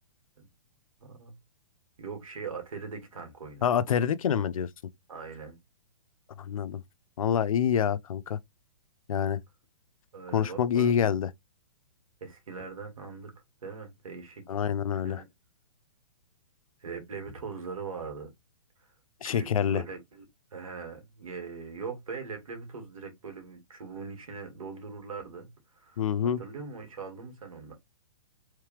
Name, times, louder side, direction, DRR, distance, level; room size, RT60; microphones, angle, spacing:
voice 1, 1.0-1.3 2.0-3.7 5.1-5.6 10.1-10.9 12.2-13.3 13.6-14.5 14.9-15.3 16.8-18.3 19.2-20.2 20.5-25.5 25.7-26.0 26.4-27.7, right 5 dB, 85° right, 2.2 m, -41 dB
voice 2, 3.6-4.7 6.4-6.8 7.2-8.4 9.1-9.4 10.3-11.3 14.5-15.2 19.2-19.8 26.0-26.4, left 8 dB, 80° left, 0.5 m, -26 dB
3.3 x 3.2 x 3.2 m
hypercardioid pair, 145°, 17 cm